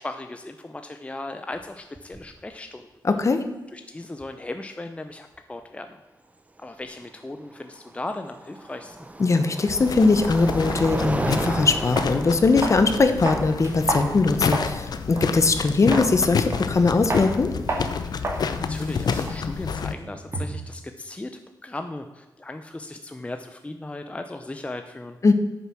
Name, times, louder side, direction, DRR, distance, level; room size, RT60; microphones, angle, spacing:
voice 1, 0.0-2.9 3.7-6.0 6.6-9.1 18.1-18.3 18.6-25.2, left 2 dB, 15° left, 7 dB, 0.6 m, -37 dB
sound 1, 1.5-1.6 2.0-2.4 4.2-4.3 7.3-15.4, right 2 dB, 20° right, 0.8 m, -34 dB
voice 2, 3.0-3.4 9.2-17.5 25.2-25.3, left 3 dB, 45° left, 8 dB, 1.1 m, -20 dB
sound 2, 9.7-19.9, left 6 dB, 65° left, 0.6 m, -29 dB
sound 3, 12.0-12.1 12.6-12.9 13.3-14.8 15.2-15.3 15.9-16.1 16.5-16.8 17.1-17.3 17.7-17.9 18.2-18.4 18.7-20.7, right 2 dB, 40° right, 2.2 m, -30 dB
9.2 x 6.8 x 6.1 m, 1.1 s
cardioid pair, 80°, 7 cm